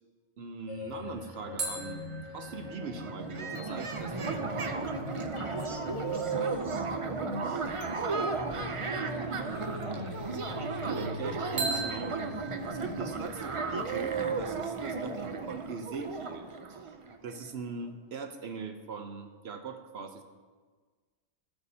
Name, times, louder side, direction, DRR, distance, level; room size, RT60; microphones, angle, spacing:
voice 1, 0.4-2.1 2.3-4.5 10.5-12.6 12.8-17.0 17.2-20.2, right 5 dB, 65° right, 6 dB, 0.9 m, -41 dB
sound 1, 0.7-13.7, left 5 dB, 90° left, 1.2 m, -44 dB
sound 2, 1.6-5.1 11.6-14.3, right 3 dB, 90° right, 1.6 m, -40 dB
sound 3, 2.5-2.6 2.8-17.4, right 4 dB, 45° right, 0.4 m, -34 dB
voice 2, 5.3-10.1 10.5-11.1 12.7-13.0, left 1 dB, 30° left, 0 dB, 1.1 m, -45 dB
15.0 x 6.8 x 2.8 m, 1.5 s
omnidirectional pair, 1.2 m